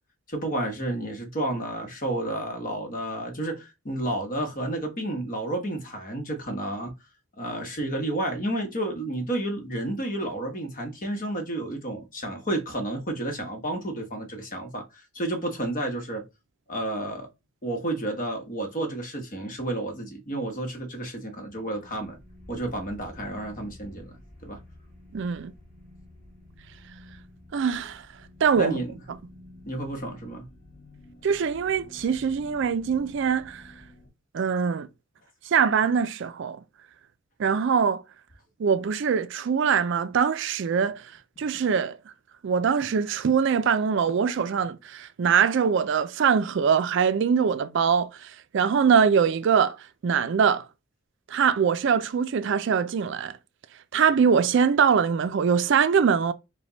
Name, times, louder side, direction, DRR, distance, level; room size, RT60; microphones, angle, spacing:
voice 1, 0.3-6.9 7.4-16.2 16.7-17.3 17.6-22.2 22.5-24.1 24.4-24.6 28.5-28.9 29.6-30.4, right 1 dB, 40° left, 1.1 m, -31 dB
sound 1, 21.4-34.1, left 1 dB, 10° left, 2.4 m, -50 dB
voice 2, 25.1-25.5 27.5-28.1 28.4-28.8 31.2-33.6 34.3-34.9 35.5-36.6 37.4-38.0 38.6-41.1 41.4-42.0 42.4-49.8 50.0-50.7 51.3-53.3 53.9-56.3, right 6 dB, 60° right, 0.4 m, -23 dB
5.0 x 2.2 x 3.9 m
head